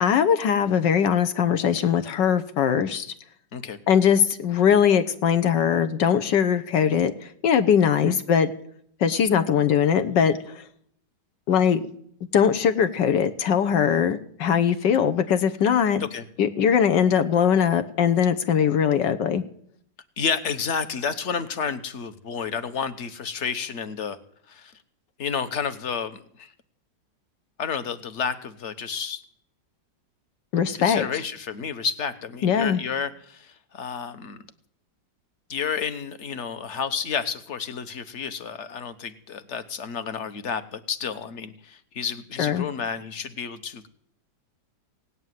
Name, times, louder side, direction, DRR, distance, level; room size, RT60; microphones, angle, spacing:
voice 1, 0.0-3.1 3.9-8.5 9.0-10.6 11.5-11.8 12.3-16.0 16.4-19.4 30.5-31.1 32.4-32.8 42.4-42.7, left 8 dB, 75° left, 11 dB, 1.6 m, -21 dB
voice 2, 20.2-24.2 24.5-24.7 25.2-26.5 27.6-29.2 30.7-34.4 35.5-43.9, left 6 dB, 45° left, 13 dB, 1.2 m, -31 dB
17.5 x 8.6 x 9.3 m, 0.64 s
omnidirectional pair, 2.0 m